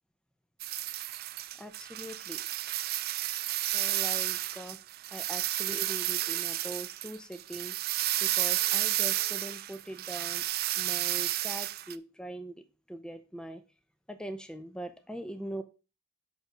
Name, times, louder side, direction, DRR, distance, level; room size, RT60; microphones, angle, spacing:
sound 1, 0.6-11.9, right 15 dB, 50° right, 0.4 m, -32 dB
voice 1, 1.6-2.4 3.7-4.8 5.1-7.8 8.2-10.4 10.8-13.6 14.1-15.6, right 1 dB, 5° left, 8 dB, 0.7 m, -42 dB
Telephone, 6.1-6.8 7.3-7.4 7.8-7.9 8.4-9.5 10.7-11.3, right 8 dB, 75° left, 1.5 m, -59 dB
6.4 x 5.3 x 4.8 m, 0.31 s
head